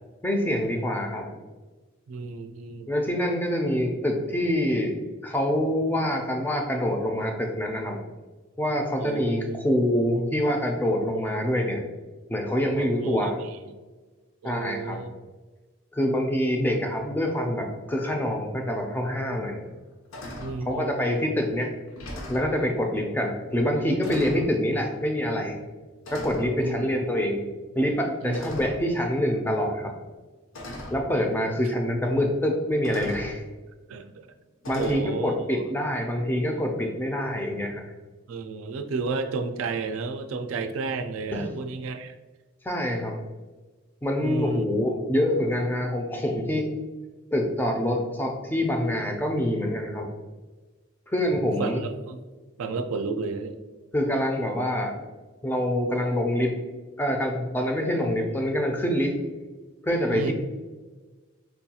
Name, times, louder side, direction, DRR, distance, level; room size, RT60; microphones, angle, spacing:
voice 1, 0.2-1.4 2.9-4.9 5.2-8.0 8.6-11.8 12.3-13.4 14.4-15.0 15.9-19.6 20.7-21.7 22.3-25.6 26.1-27.5 27.7-29.9 30.9-33.4 34.7-37.8 41.3-41.5 42.6-43.2 44.0-46.7 47.3-50.1 51.1-51.8 53.9-54.9 55.4-56.5 57.0-59.2 59.8-60.3, left 1 dB, 10° left, 2 dB, 0.3 m, -26 dB
voice 2, 2.1-2.9 9.0-9.6 12.8-13.7 14.4-15.1 20.4-21.3 26.6-26.8 28.2-28.4 33.9-34.2 34.7-35.6 38.3-42.1 44.2-44.7 51.4-52.2 52.6-53.6 60.1-60.3, right 4 dB, 90° right, 7 dB, 0.4 m, -32 dB
sound 1, 19.0-19.1 19.6-19.8 20.1-20.6 21.4-21.5 21.9-22.5 23.5-23.7 24.0-24.5 25.4-25.7 26.0-26.5 28.3-28.9 30.0-30.1 30.5-31.0 32.2-32.3 32.8-33.3 34.6-35.0, left 1 dB, 85° left, 0.7 m, -39 dB
4.4 x 2.3 x 2.8 m, 1.3 s
head